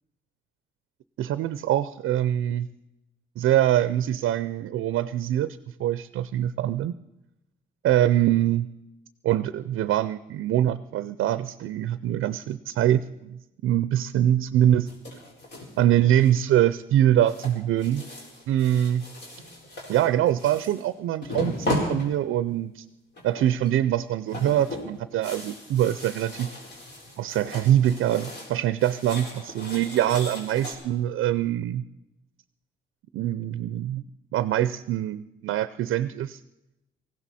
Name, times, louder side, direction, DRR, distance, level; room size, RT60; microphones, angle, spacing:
voice 1, 1.2-2.7 3.4-6.9 7.8-8.7 9.2-14.9 15.8-18.0 18.5-19.1 19.9-22.8 23.2-26.5 27.2-31.8 33.1-34.0 34.3-36.4, right 12 dB, 85° right, 14 dB, 0.5 m, -24 dB
sound 1, 14.9-15.8 16.2-16.6 17.3-20.9 21.2-22.6 23.2-23.7 24.0-28.5 28.8-30.7, left 1 dB, 60° left, 4.3 m, -36 dB
18.5 x 15.5 x 4.2 m, 0.92 s
cardioid pair, 100°, 20 cm